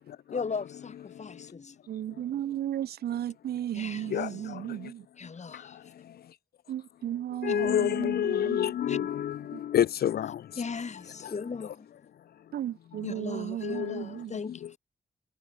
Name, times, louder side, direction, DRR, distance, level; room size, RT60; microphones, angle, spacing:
voice 1, 0.3-1.8 3.7-4.1 5.2-5.9 8.9-9.0 10.6-11.9 13.0-14.8, left 5 dB, 45° left, 1.8 m, -37 dB
voice 2, 1.9-5.1 6.7-9.1 9.5-9.6 12.5-14.3, right 11 dB, 85° right, 3.0 m, -35 dB
voice 3, 7.4-10.4 13.6-14.0, left 10 dB, 80° left, 0.9 m, -27 dB
supercardioid pair, 45°, 16 cm